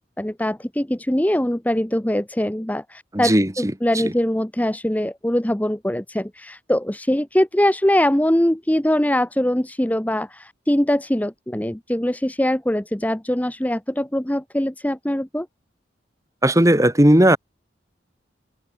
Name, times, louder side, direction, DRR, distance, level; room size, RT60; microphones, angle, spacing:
voice 1, 0.0-15.5, left 1 dB, 10° left, 0.8 m, -22 dB
voice 2, 3.1-4.1 16.4-17.4, right 1 dB, 15° right, 2.0 m, -17 dB
head